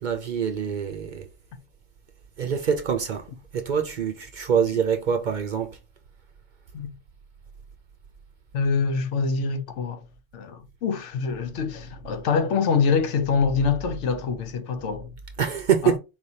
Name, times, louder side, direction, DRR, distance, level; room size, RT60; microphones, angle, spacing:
voice 1, 0.0-1.3 2.4-3.3 3.5-5.8 15.4-16.0, right 7 dB, 55° right, 0.6 m, -25 dB
voice 2, 8.5-10.0 10.3-15.2 15.8-15.9, left 5 dB, 85° left, 1.0 m, -25 dB
4.4 x 3.3 x 2.7 m
omnidirectional pair, 1.2 m